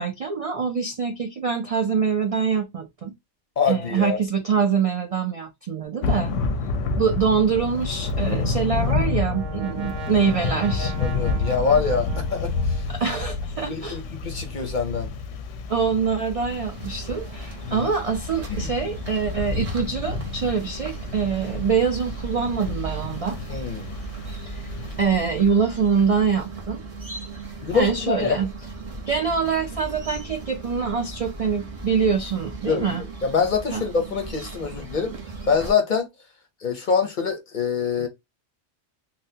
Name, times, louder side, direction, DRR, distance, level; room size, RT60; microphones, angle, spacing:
voice 1, 0.0-3.1 3.7-6.3 7.0-10.9 12.9-14.0 15.7-23.4 25.0-26.8 27.7-28.5 29.1-33.0 33.7-33.8, right 6 dB, 70° right, 0.3 m, -24 dB
voice 2, 3.6-4.2 10.8-12.8 13.6-15.1 17.7-17.9 18.5-18.7 23.5-23.9 27.6-28.4 32.7-35.1 35.5-36.1 36.6-38.1, left 5 dB, 50° left, 0.6 m, -25 dB
Thunder / Rain, 6.0-25.1, left 3 dB, 90° left, 0.9 m, -29 dB
Brass instrument, 8.5-13.3, right 5 dB, 90° right, 1.1 m, -39 dB
sound 1, 16.5-35.7, right 2 dB, 35° right, 0.8 m, -37 dB
3.8 x 2.1 x 2.7 m
omnidirectional pair, 1.3 m